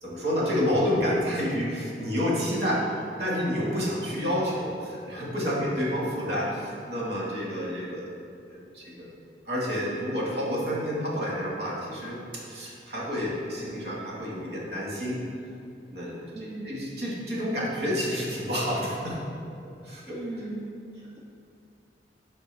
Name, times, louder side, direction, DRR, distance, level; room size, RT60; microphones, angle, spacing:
voice 1, 0.0-8.1 8.5-9.1 9.4-15.2 15.9-19.2 19.8-20.2, equal, 65° right, -5 dB, 1.6 m, -29 dB
voice 2, 16.3-16.8 20.1-21.2, right 2 dB, 25° right, -4 dB, 0.6 m, -38 dB
11.5 x 4.3 x 3.3 m, 2.5 s
head